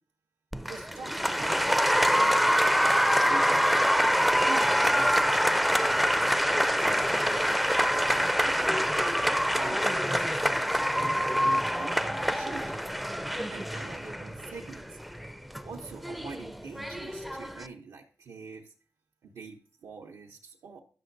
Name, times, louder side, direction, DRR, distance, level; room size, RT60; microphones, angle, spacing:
Applause, 0.5-17.7, equal, ahead, 0.4 m, -25 dB
voice 1, 0.6-3.7 4.4-5.4 5.8-6.3 6.5-8.4 9.4-11.2 11.8-12.9 13.5-15.0 15.6-18.7 19.2-20.8, right 4 dB, 85° right, 1 dB, 0.7 m, -45 dB
10.0 x 5.9 x 2.6 m, 0.42 s
cardioid pair, 60°, 6 cm